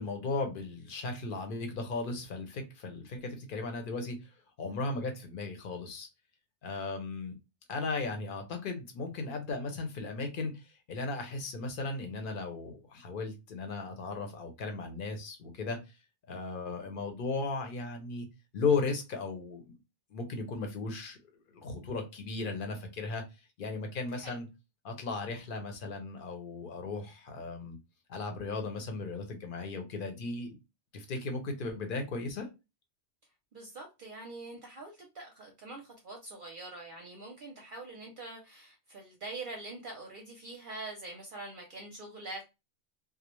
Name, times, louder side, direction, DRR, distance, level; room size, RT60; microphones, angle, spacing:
voice 1, 0.0-4.2 4.6-6.1 6.6-7.4 7.7-10.5 10.9-15.8 16.3-18.3 18.5-19.8 20.1-21.2 21.5-23.2 23.6-24.5 24.8-27.8 28.1-30.6 30.9-32.5, left 3 dB, 55° left, 5 dB, 0.7 m, -36 dB
voice 2, 33.5-42.4, right 2 dB, 55° right, 1 dB, 0.7 m, -44 dB
2.4 x 2.0 x 2.9 m, 0.25 s
omnidirectional pair, 1.2 m